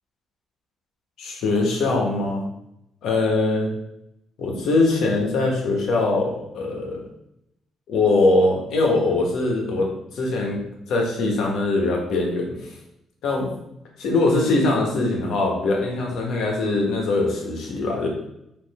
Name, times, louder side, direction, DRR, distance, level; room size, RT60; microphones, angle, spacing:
voice 1, 1.2-2.4 3.0-3.7 4.4-7.0 7.9-9.9 10.2-10.6 10.9-12.7 13.2-13.5 14.0-18.1, left 2 dB, 80° left, 0 dB, 1.2 m, -22 dB
4.4 x 2.9 x 4.1 m, 0.81 s
cardioid pair, 90°, 0 cm